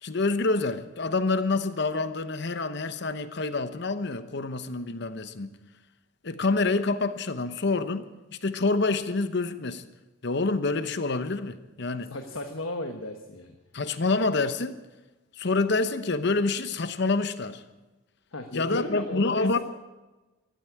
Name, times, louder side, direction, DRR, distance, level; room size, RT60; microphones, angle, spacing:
voice 1, 0.0-5.6 6.2-9.8 10.2-12.1 13.7-14.8 15.3-17.6 18.5-19.6, left 3 dB, 60° left, 1.0 m, -27 dB
voice 2, 12.1-13.6 18.3-19.6, left 2 dB, 90° left, 1.3 m, -34 dB
14.0 x 12.0 x 8.6 m
head